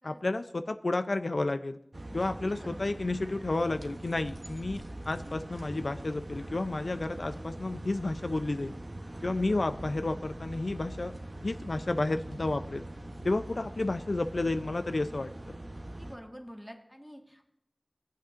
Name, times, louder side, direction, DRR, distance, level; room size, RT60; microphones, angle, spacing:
voice 1, 0.0-1.8 2.1-8.7 9.2-11.1 11.4-12.8 13.2-15.5, left 2 dB, 75° left, 9 dB, 0.4 m, -31 dB
sound 1, 1.9-16.2, right 1 dB, 50° right, 0.8 m, -43 dB
voice 2, 2.3-3.0 9.1-9.9 15.7-17.5, equal, 5° right, 2 dB, 1.5 m, -49 dB
sound 2, 5.0-13.3, equal, 80° right, 1.7 m, -51 dB
18.0 x 8.2 x 2.5 m, 0.76 s
wide cardioid pair, 50°, 0 cm